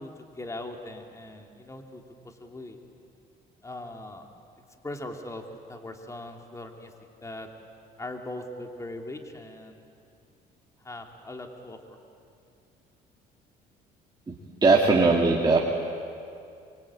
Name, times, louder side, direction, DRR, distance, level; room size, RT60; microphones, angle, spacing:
voice 1, 0.0-2.8 3.6-4.3 4.8-6.9 7.2-7.5 8.0-9.8 10.8-12.0, left 1 dB, 15° left, 3 dB, 3.0 m, -40 dB
voice 2, 14.6-15.6, right 3 dB, 25° right, -2 dB, 2.6 m, -19 dB
24.0 x 24.0 x 8.8 m, 2.4 s
supercardioid pair, 85°, 18 cm